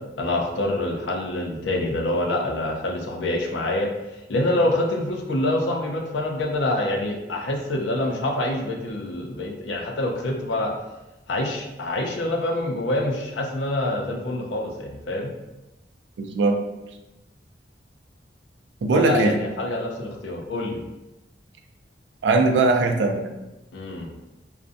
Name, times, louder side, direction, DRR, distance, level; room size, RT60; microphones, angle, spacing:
voice 1, 0.2-3.9 4.3-10.7 11.3-15.3 18.9-20.8 23.7-24.1, left 1 dB, 80° left, 1 dB, 0.5 m, -26 dB
voice 2, 16.2-16.6 18.8-19.4 22.2-23.3, right 3 dB, 75° right, 4 dB, 0.3 m, -20 dB
2.5 x 2.1 x 2.5 m, 0.96 s
head